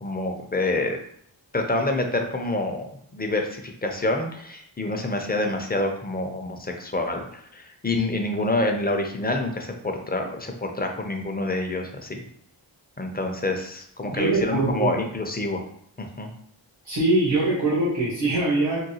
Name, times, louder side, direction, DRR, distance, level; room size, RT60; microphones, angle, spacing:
voice 1, 0.0-1.0 1.5-12.2 13.0-15.6 16.0-16.3, left 2 dB, 20° left, 3 dB, 0.4 m, -27 dB
voice 2, 14.0-15.0 16.8-18.8, right 2 dB, 85° right, -8 dB, 1.3 m, -23 dB
3.6 x 2.3 x 2.8 m, 0.68 s
wide cardioid pair, 75°, 45 cm